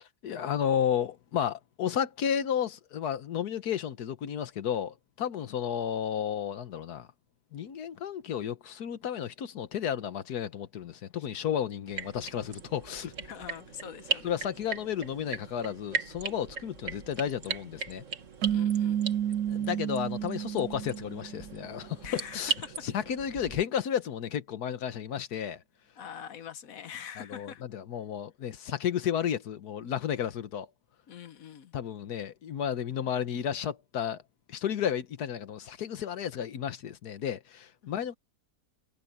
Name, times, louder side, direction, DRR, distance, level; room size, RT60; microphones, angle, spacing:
voice 1, 0.0-7.1 7.5-13.1 14.2-18.0 19.5-22.5 22.8-25.6 27.2-30.7 31.7-34.2 34.5-38.1, left 9 dB, 85° left, 1.6 m, -32 dB
sound 1, 11.9-23.6, right 5 dB, 55° right, 2.0 m, -38 dB
voice 2, 13.2-14.3 18.5-19.1 22.0-22.7 26.0-27.6 31.1-31.7 37.8-37.9, left 8 dB, 65° left, 1.3 m, -44 dB
sound 2, 18.4-21.7, right 10 dB, 80° right, 1.1 m, -31 dB
omnidirectional pair, 1.6 m